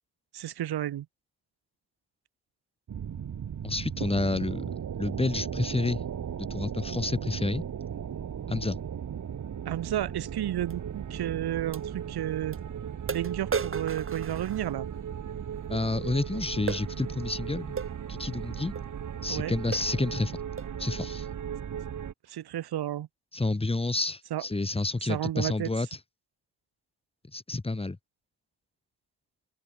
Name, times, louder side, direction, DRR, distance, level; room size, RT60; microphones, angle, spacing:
voice 1, 0.3-1.1 9.7-12.6 13.1-14.9 19.3-19.5 22.3-23.1 24.3-24.4 25.0-25.7, right 12 dB, 80° right, 5.7 m, -32 dB
sound 1, 2.9-22.1, right 8 dB, 50° right, 4.9 m, -36 dB
voice 2, 3.6-4.7 5.0-6.0 6.5-7.6 8.5-8.8 15.7-17.8 18.1-18.7 19.2-20.4 20.8-21.3 23.3-25.9 27.3-28.0, left 2 dB, 15° left, 5.4 m, -29 dB
sound 2, 10.7-10.8 11.7-11.8 12.5-12.6 13.1-15.0 16.7-16.9 17.8-18.0 18.7-18.9 19.3-19.4 19.7-20.0 20.6-20.8, right 6 dB, 35° right, 3.0 m, -35 dB
cardioid pair, 130°, 38 cm